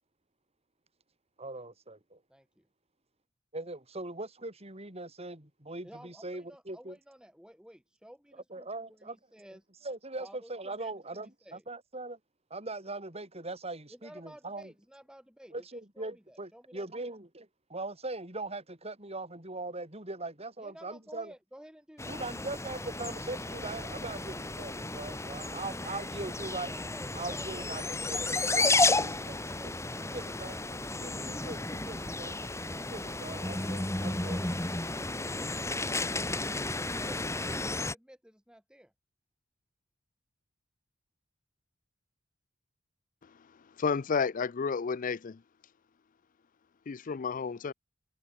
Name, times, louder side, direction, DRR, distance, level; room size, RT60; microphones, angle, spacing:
voice 1, 1.4-2.2 3.5-7.0 8.5-9.2 9.8-12.2 12.5-14.7 15.5-21.3 22.1-26.7 27.1-29.7 30.0-30.6 31.0-32.4 32.7-34.4, right 2 dB, 30° right, 6.6 m, -41 dB
voice 2, 2.3-2.7 5.8-9.7 10.2-11.6 13.9-17.1 20.6-22.9 26.7-28.5 29.3-30.7 31.2-31.8 32.7-33.1 34.2-38.9, equal, 5° right, 5.2 m, -54 dB
sound 1, 22.0-37.9, left 2 dB, 15° left, 2.0 m, -32 dB
voice 3, 43.8-45.4 46.9-47.7, left 5 dB, 40° left, 0.4 m, -31 dB
head